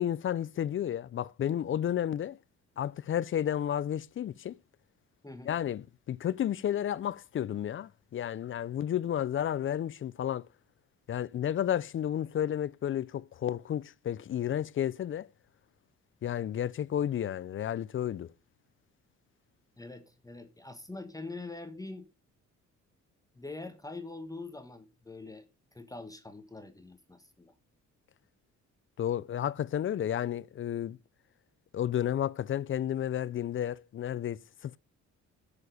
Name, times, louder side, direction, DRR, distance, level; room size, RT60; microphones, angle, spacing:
voice 1, 0.0-2.4 2.8-4.6 5.5-10.5 11.1-15.3 16.2-18.3 29.0-31.0 31.7-34.8, left 10 dB, 45° left, 0.4 m, -32 dB
voice 2, 5.2-5.5 19.8-22.1 23.3-25.5 25.7-27.5, left 3 dB, 10° left, 1.3 m, -44 dB
8.2 x 7.0 x 5.2 m
cardioid pair, 90°, 30 cm